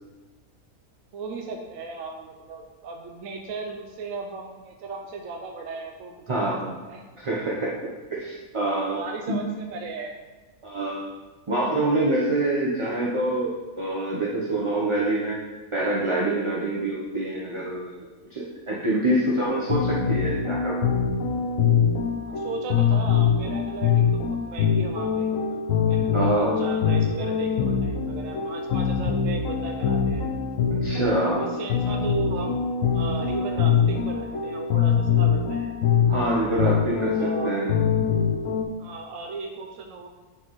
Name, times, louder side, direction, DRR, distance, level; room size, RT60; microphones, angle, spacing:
voice 1, 1.1-7.0 8.8-10.2 22.3-25.3 25.9-30.3 31.4-32.7 32.9-35.7 37.1-37.6 38.8-40.1, right 4 dB, 65° right, 2 dB, 0.9 m, -36 dB
voice 2, 6.3-6.7 7.2-7.7 8.1-9.0 9.3-9.4 10.6-11.1 11.5-15.4 15.7-18.0 18.3-20.9 26.1-26.6 30.8-31.5 36.1-37.8, right 1 dB, 30° right, -5 dB, 0.6 m, -26 dB
sound 1, 19.4-38.6, left 6 dB, 65° left, 1.0 m, -24 dB
9.9 x 4.7 x 3.1 m, 1.3 s
omnidirectional pair, 1.6 m